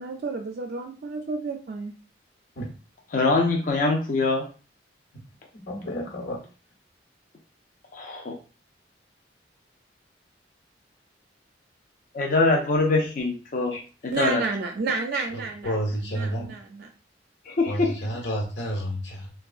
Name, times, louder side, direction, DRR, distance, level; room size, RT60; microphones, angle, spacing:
voice 1, 0.0-1.9 14.1-15.7 16.1-16.9, right 4 dB, 55° right, 3 dB, 0.3 m, -30 dB
voice 2, 3.1-4.4 7.9-8.4 12.1-13.7 14.0-14.4 17.4-17.9, left 3 dB, 45° left, 0 dB, 0.5 m, -23 dB
voice 3, 5.5-6.4 13.7-13.8 15.3-16.6 17.6-19.3, equal, 80° left, -1 dB, 1.2 m, -31 dB
3.5 x 2.2 x 2.4 m, 0.36 s
head